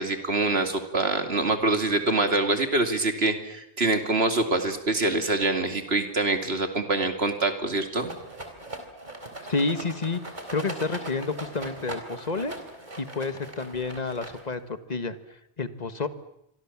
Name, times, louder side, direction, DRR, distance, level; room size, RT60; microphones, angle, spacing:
voice 1, 0.0-8.1, right 2 dB, 70° right, 6 dB, 2.9 m, -25 dB
Rattle, 8.0-14.7, right 1 dB, 45° right, 4.2 m, -40 dB
voice 2, 9.5-10.2 10.5-12.5 13.0-16.1, left 3 dB, 40° left, 11 dB, 1.6 m, -30 dB
27.5 x 24.5 x 7.3 m, 0.81 s
omnidirectional pair, 1.1 m